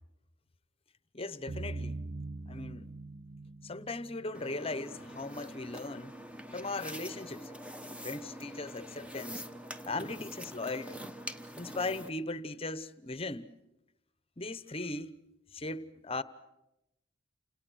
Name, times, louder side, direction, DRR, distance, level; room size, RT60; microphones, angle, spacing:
voice 1, 1.1-2.0 2.5-2.9 3.6-6.2 6.5-7.5 8.0-9.5 9.9-11.0 11.5-13.5 14.4-15.2 15.5-16.2, left 2 dB, 30° left, 1.0 m, -38 dB
sound 1, 1.5-5.2, right 2 dB, 45° right, 1.0 m, -42 dB
sound 2, 4.3-12.1, equal, 5° right, 1.1 m, -45 dB
29.5 x 27.0 x 6.5 m
head